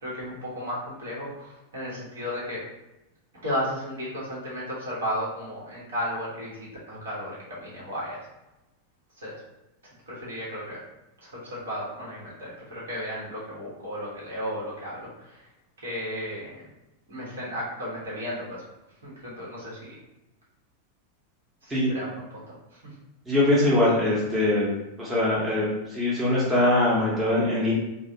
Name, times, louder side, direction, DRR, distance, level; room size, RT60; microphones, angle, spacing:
voice 1, 0.0-2.6 3.4-8.2 9.2-9.3 10.1-10.8 11.2-15.4 15.8-16.6 17.1-18.6 19.0-19.8 21.6-22.8, equal, 70° right, -6 dB, 1.1 m, -34 dB
voice 2, 23.3-24.7 25.0-27.7, left 1 dB, 10° right, -7 dB, 0.9 m, -22 dB
3.2 x 2.1 x 2.7 m, 0.96 s
figure-of-eight pair, 90°, 0 cm